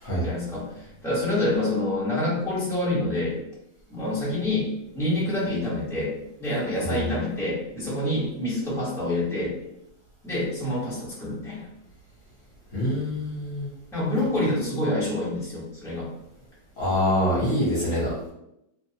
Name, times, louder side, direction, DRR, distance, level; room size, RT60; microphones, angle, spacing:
voice 1, 0.2-3.4 3.9-4.7 4.9-6.1 6.4-9.5 10.2-11.6 13.9-16.1, left 1 dB, 5° left, -9 dB, 0.5 m, -27 dB
voice 2, 12.7-13.7 16.8-18.3, left 1 dB, 55° left, -7 dB, 1.1 m, -25 dB
2.9 x 2.0 x 2.7 m, 0.83 s
omnidirectional pair, 1.9 m